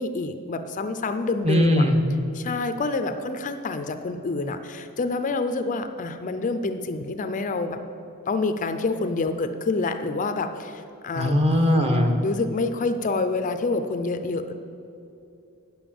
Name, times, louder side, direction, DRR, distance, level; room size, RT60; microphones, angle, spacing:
voice 1, 0.0-1.8 2.3-7.8 8.3-11.4 12.2-14.5, left 3 dB, 35° left, 9 dB, 0.4 m, -27 dB
voice 2, 1.4-2.0 11.1-12.1, left 1 dB, 30° right, 4 dB, 1.0 m, -20 dB
9.1 x 7.0 x 7.5 m, 2.7 s
head